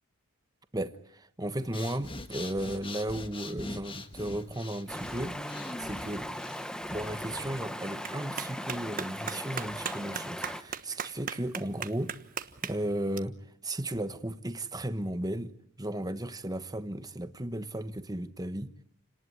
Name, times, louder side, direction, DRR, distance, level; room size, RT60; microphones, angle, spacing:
voice 1, 0.7-5.4 5.8-6.3 6.9-12.1 12.6-18.7, right 1 dB, 15° right, 1.3 m, -35 dB
Breathing, 1.6-7.7, left 2 dB, 25° left, 1.6 m, -44 dB
Stream, 4.9-10.6, equal, 5° left, 1.2 m, -38 dB
Clapping, 6.6-13.2, right 7 dB, 40° right, 1.3 m, -41 dB
29.5 x 19.0 x 9.7 m
head